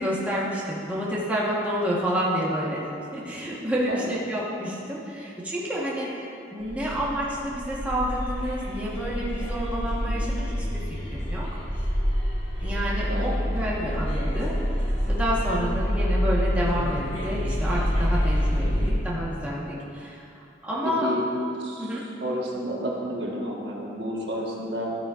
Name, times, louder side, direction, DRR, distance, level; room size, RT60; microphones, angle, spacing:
voice 1, 0.0-6.1 6.5-10.8 11.1-11.4 12.6-14.5 14.8-20.3 20.6-21.1 21.8-22.0, equal, 10° right, -7 dB, 1.2 m, -29 dB
sound 1, 6.6-18.9, equal, 85° left, 2.0 m, -27 dB
voice 2, 20.8-21.2 21.6-21.9 22.2-24.9, equal, 65° right, -3 dB, 1.4 m, -31 dB
13.0 x 8.6 x 2.5 m, 2.6 s
head